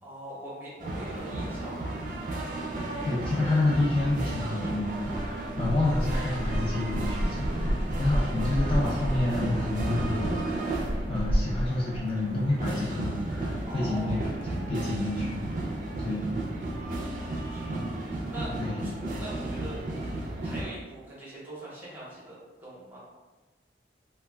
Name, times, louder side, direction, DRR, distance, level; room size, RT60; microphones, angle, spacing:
voice 1, 0.0-1.9 2.7-3.8 13.6-14.3 17.1-23.0, right 1 dB, 10° right, -8 dB, 0.8 m, -43 dB
sound 1, 0.8-20.7, right 1 dB, 45° right, 0.4 m, -31 dB
voice 2, 3.0-14.2 14.5-15.4 16.0-16.2 18.6-18.8, left 2 dB, 30° left, -6 dB, 0.4 m, -29 dB
2.2 x 2.2 x 3.3 m, 1.2 s
head